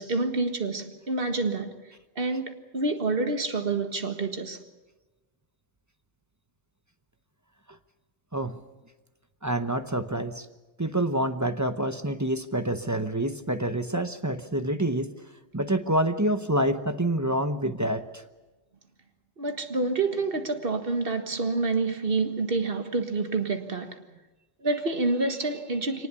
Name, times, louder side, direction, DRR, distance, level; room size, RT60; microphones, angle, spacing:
voice 1, 0.0-1.7 2.2-4.6 19.4-24.0 24.6-26.1, right 3 dB, 50° right, 1.8 m, -28 dB
voice 2, 9.4-10.5 10.8-15.1 15.5-18.2, right 1 dB, 15° right, 0.8 m, -27 dB
24.0 x 19.5 x 7.1 m
omnidirectional pair, 1.3 m